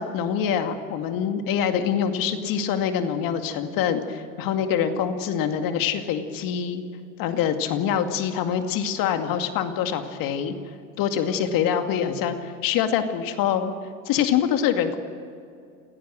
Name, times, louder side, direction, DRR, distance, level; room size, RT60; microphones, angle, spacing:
voice 1, 0.0-6.8 7.2-10.5 11.0-13.7 14.1-15.0, left 8 dB, 55° left, 7 dB, 2.3 m, -25 dB
28.0 x 17.0 x 6.4 m, 2.5 s
hypercardioid pair, 80°, 41 cm